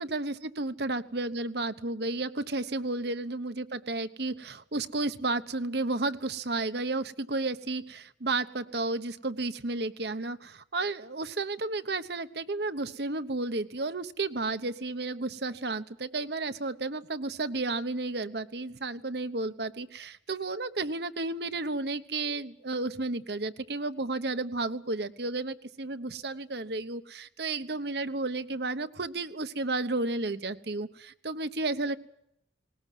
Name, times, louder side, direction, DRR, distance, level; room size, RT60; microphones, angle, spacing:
voice 1, 0.0-32.0, right 2 dB, 60° right, 11 dB, 1.1 m, -32 dB
20.0 x 19.5 x 9.3 m, 0.77 s
head